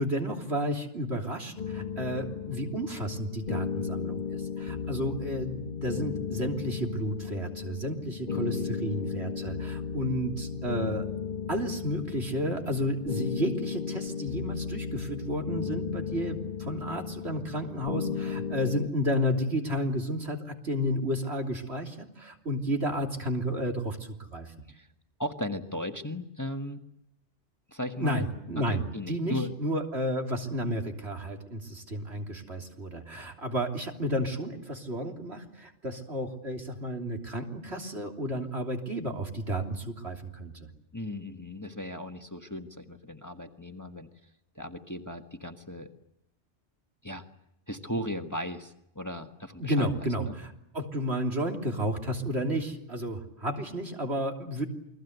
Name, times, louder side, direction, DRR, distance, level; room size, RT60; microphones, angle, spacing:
voice 1, 0.0-11.1 11.5-24.5 28.0-40.7 49.6-54.7, equal, 65° right, 2 dB, 3.6 m, -32 dB
sound 1, 1.6-18.9, left 6 dB, 45° left, 1.3 m, -35 dB
voice 2, 8.3-8.8 24.7-24.9 25.2-26.8 27.7-28.3 28.6-29.5 40.9-44.1 44.5-45.9 47.0-47.2 47.7-50.3, left 1 dB, 15° left, 5 dB, 1.5 m, -37 dB
28.5 x 21.5 x 8.1 m, 0.80 s
omnidirectional pair, 1.2 m